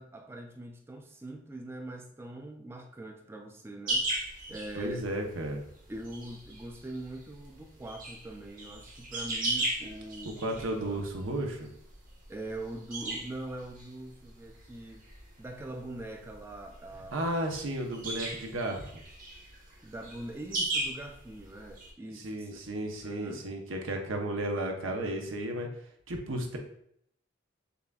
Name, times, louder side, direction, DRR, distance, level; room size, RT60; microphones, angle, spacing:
voice 1, 0.0-4.1 4.5-5.0 5.9-10.4 10.8-11.0 12.3-15.0 15.4-17.3 19.8-22.6 23.0-23.5, right 1 dB, 10° right, 3 dB, 0.3 m, -42 dB
sound 1, 3.9-21.9, right 2 dB, 45° right, 1.1 m, -38 dB
voice 2, 4.7-5.6 10.4-11.7 17.1-19.0 22.1-25.7 26.1-26.6, right 1 dB, 90° right, 3 dB, 0.7 m, -33 dB
6.7 x 2.5 x 2.3 m, 0.70 s
head